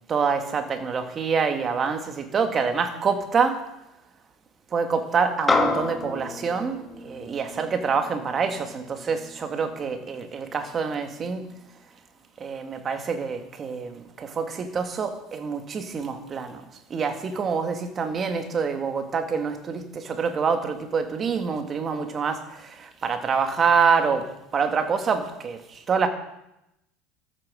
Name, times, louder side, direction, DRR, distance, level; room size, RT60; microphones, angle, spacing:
voice 1, 0.1-3.7 4.7-11.5 12.4-16.6 16.9-26.1, right 5 dB, 30° right, 2.0 m, -26 dB
sound 1, 5.5-10.1, left 3 dB, 15° left, 1.7 m, -29 dB
13.5 x 9.2 x 7.6 m
supercardioid pair, 120°, 0 cm